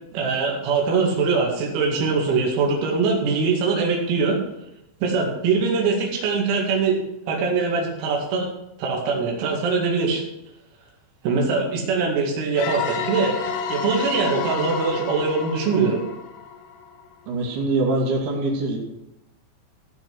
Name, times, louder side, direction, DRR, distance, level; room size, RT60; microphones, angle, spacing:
voice 1, 0.1-4.4 5.0-7.0 7.3-8.5 8.8-10.2 11.2-13.4 13.7-16.0, right 4 dB, 85° right, -1 dB, 4.9 m, -22 dB
sound 1, 12.6-17.1, left 6 dB, 85° left, 3.8 m, -30 dB
voice 2, 17.3-18.8, right 2 dB, 55° right, -2 dB, 4.3 m, -23 dB
16.0 x 6.4 x 6.2 m, 0.84 s
omnidirectional pair, 6.0 m